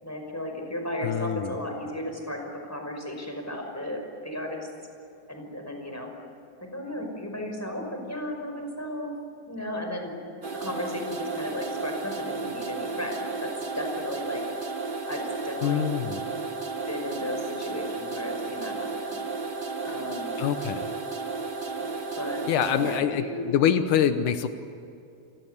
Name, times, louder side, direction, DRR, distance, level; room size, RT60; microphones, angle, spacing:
voice 1, 0.0-4.7 5.3-6.1 6.6-9.2 9.5-10.2 10.5-14.5 15.1-15.9 16.9-19.2 19.8-20.3 21.8-21.9 22.2-22.5 22.7-23.5, left 1 dB, 5° left, 3 dB, 5.3 m, -35 dB
voice 2, 1.0-1.5 15.6-16.2 20.4-20.9 22.5-24.5, left 9 dB, 85° left, 9 dB, 2.6 m, -25 dB
sound 1, 10.4-23.0, right 4 dB, 30° right, 1.0 m, -33 dB
29.0 x 25.0 x 8.2 m, 2.7 s
omnidirectional pair, 3.6 m